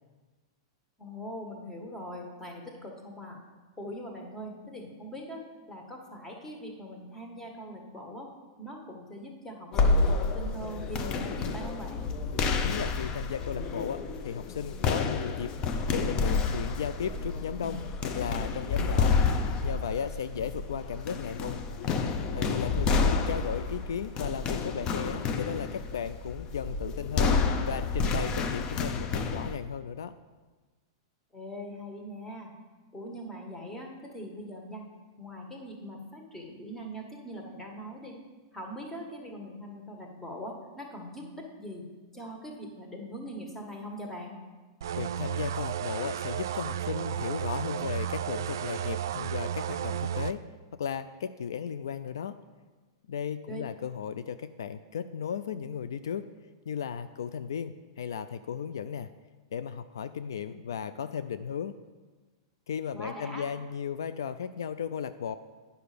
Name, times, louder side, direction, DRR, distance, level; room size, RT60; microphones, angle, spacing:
voice 1, 1.0-3.4 3.8-5.4 5.7-8.3 8.6-12.1 22.9-23.1 31.3-32.5 32.9-34.8 35.2-38.2 38.5-41.2 41.6-41.9 42.1-44.4 53.5-53.6 62.9-63.5, equal, 10° left, 1 dB, 1.7 m, -41 dB
sound 1, 9.7-29.6, left 4 dB, 35° left, 0.7 m, -29 dB
voice 2, 12.6-15.5 15.9-17.8 18.1-19.2 19.6-21.6 22.3-27.3 27.6-30.1 45.0-50.4 50.7-52.4 53.1-56.2 56.7-59.1 59.5-61.7 62.7-65.4, left 7 dB, 80° left, 12 dB, 0.3 m, -35 dB
sound 2, 44.8-50.3, right 9 dB, 70° right, 0.3 m, -33 dB
9.4 x 5.6 x 5.1 m, 1.3 s
hypercardioid pair, 110°, 2 cm